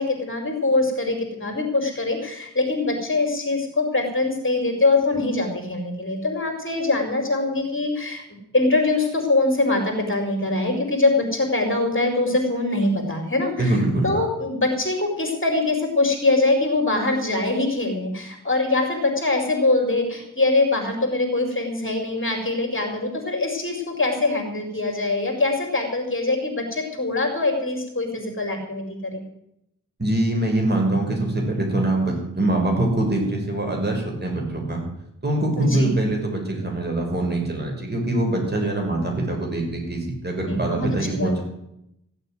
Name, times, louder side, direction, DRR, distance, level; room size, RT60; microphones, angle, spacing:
voice 1, 0.0-8.2 8.5-29.2 35.6-35.9 40.4-40.9 41.1-41.4, left 2 dB, 35° left, 3 dB, 4.8 m, -23 dB
voice 2, 13.6-14.1 30.0-34.8 35.2-41.4, right 1 dB, 30° right, 0 dB, 6.5 m, -23 dB
15.5 x 8.6 x 9.4 m, 0.80 s
cardioid pair, 60°, 33 cm